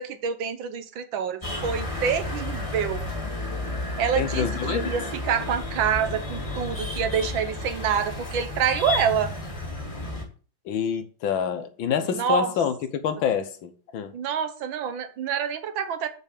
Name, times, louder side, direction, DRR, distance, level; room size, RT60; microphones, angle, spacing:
voice 1, 0.0-3.1 4.0-9.3 12.0-12.5 14.1-16.1, right 7 dB, 80° right, 1.7 m, -27 dB
sound 1, 1.4-10.2, left 2 dB, 15° left, 1.9 m, -32 dB
voice 2, 4.2-4.9 10.7-14.1, left 8 dB, 80° left, 1.8 m, -27 dB
6.9 x 5.4 x 6.8 m
omnidirectional pair, 2.1 m